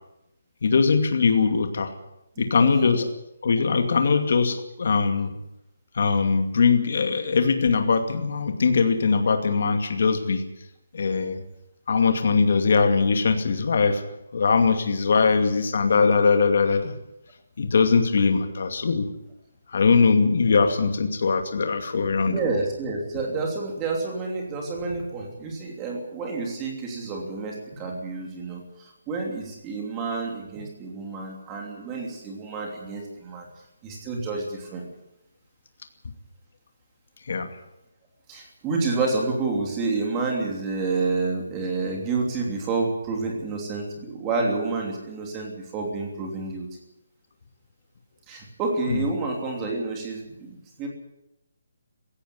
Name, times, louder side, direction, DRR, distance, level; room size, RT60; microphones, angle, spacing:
voice 1, 0.6-1.9 2.4-3.1 3.4-5.3 5.9-10.4 10.9-11.4 11.9-14.0 14.3-16.9 17.6-19.1 19.7-22.4 37.3-37.5 48.9-49.0, left 5 dB, 40° left, 6 dB, 2.4 m, -21 dB
voice 2, 2.4-3.0 22.2-33.5 33.8-34.8 38.3-46.7 48.3-50.9, right 3 dB, 10° right, 0 dB, 3.0 m, -29 dB
17.0 x 16.0 x 9.6 m, 0.86 s
hypercardioid pair, 180°, 0 cm